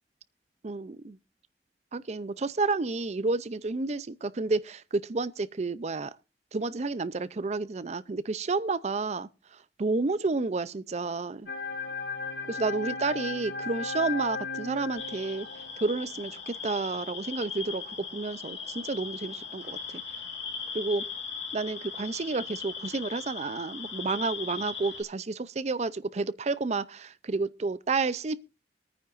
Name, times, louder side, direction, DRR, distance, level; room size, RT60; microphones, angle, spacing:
voice 1, 0.6-1.2 1.9-6.1 6.5-9.3 9.8-11.5 12.5-15.5 15.8-20.0 20.7-21.1 21.5-28.7, right 3 dB, 40° right, 0.5 m, -30 dB
sound 1, 11.5-15.9, left 4 dB, 65° left, 0.9 m, -36 dB
sound 2, 15.0-25.0, left 6 dB, 90° left, 3.0 m, -39 dB
23.5 x 9.5 x 2.5 m
head